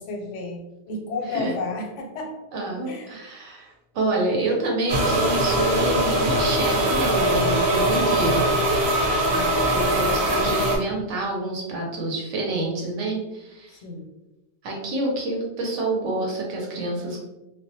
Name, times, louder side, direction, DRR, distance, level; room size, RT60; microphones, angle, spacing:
voice 1, 0.0-2.4 2.9-3.2 3.6-3.7 9.2-9.7 13.7-14.1, left 3 dB, 85° left, 2 dB, 0.9 m, -33 dB
voice 2, 2.5-8.5 9.7-13.8 14.6-17.2, right 2 dB, 85° right, -1 dB, 1.0 m, -27 dB
sound 1, 4.9-10.8, right 1 dB, 60° right, 0.7 m, -21 dB
2.3 x 2.1 x 2.7 m, 1.0 s
omnidirectional pair, 1.2 m